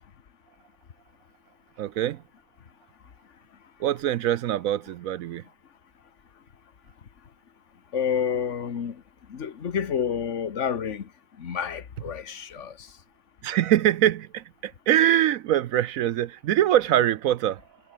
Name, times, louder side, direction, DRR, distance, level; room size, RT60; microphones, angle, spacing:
voice 1, 1.8-2.2 3.8-5.4 13.4-17.6, right 12 dB, 70° right, 0.8 m, -23 dB
voice 2, 7.9-8.9 9.3-11.1 11.4-12.7, left 7 dB, 45° left, 1.5 m, -29 dB
omnidirectional pair, 2.0 m